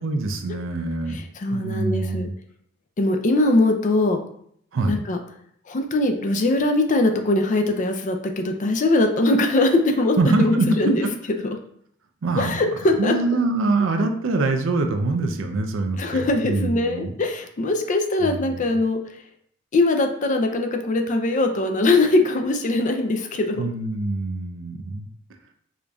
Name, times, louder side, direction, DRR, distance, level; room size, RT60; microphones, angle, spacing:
voice 1, 0.0-1.2 1.5-2.3 4.7-4.9 10.2-11.1 12.2-17.1 18.2-18.8 23.5-25.1, right 3 dB, 70° right, 6 dB, 0.5 m, -24 dB
voice 2, 1.1-2.3 3.0-4.2 4.9-5.2 5.7-11.0 11.4-11.5 12.4-13.1 16.0-19.0 19.7-23.7, left 2 dB, 40° left, 5 dB, 0.4 m, -21 dB
4.9 x 2.6 x 2.3 m, 0.66 s
head